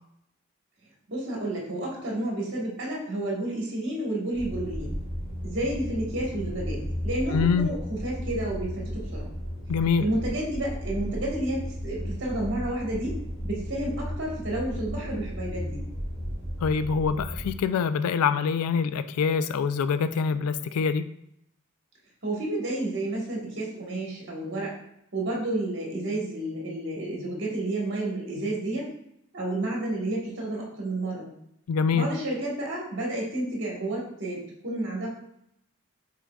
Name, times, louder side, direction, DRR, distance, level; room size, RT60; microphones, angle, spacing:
voice 1, 1.1-4.9 5.4-9.3 10.0-15.8 22.2-24.8 25.1-28.9 29.3-31.3 31.9-35.1, right 1 dB, 50° right, -2 dB, 1.3 m, -31 dB
sound 1, 4.3-17.5, equal, 65° left, 1.6 m, -34 dB
voice 2, 7.3-7.7 9.7-10.1 16.6-21.0 31.7-32.1, left 6 dB, 85° left, 13 dB, 0.3 m, -25 dB
5.9 x 3.8 x 2.3 m, 0.75 s
head